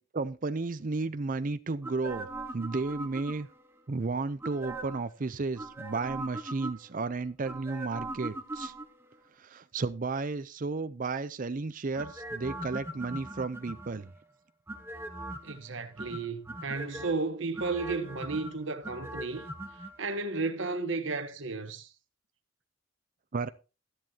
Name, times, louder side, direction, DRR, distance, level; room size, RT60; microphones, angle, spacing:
voice 1, 0.1-2.3 2.5-3.5 3.9-8.7 9.4-14.1 23.3-23.5, right 3 dB, 40° right, 0.5 m, -33 dB
sound 1, 1.8-3.7 4.4-5.1 5.6-7.0 7.4-9.1 11.9-14.1 14.7-15.6 16.0-17.1 17.5-19.9 20.2-20.3, right 1 dB, 10° right, 1.0 m, -40 dB
voice 2, 15.4-19.5 20.0-21.9, right 3 dB, 70° right, 1.1 m, -33 dB
13.0 x 10.5 x 2.8 m
head